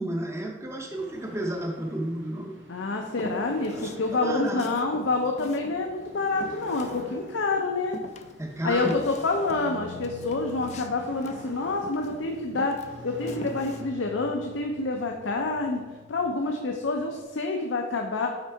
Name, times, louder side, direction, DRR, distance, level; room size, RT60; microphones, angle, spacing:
voice 1, 0.0-2.6 3.7-4.7 8.4-9.0, right 1 dB, 15° right, 1 dB, 0.6 m, -32 dB
sound 1, 0.9-17.2, equal, 75° right, 1.0 m, -46 dB
voice 2, 2.7-8.0 8.6-12.8 13.0-15.8 16.1-18.3, left 3 dB, 85° left, 2 dB, 0.6 m, -27 dB
Walk footsteps, 3.1-4.1 4.4-7.5 7.9-12.2 12.5-13.8, left 2 dB, 35° left, 0.4 m, -42 dB
6.5 x 4.4 x 4.6 m, 1.3 s
head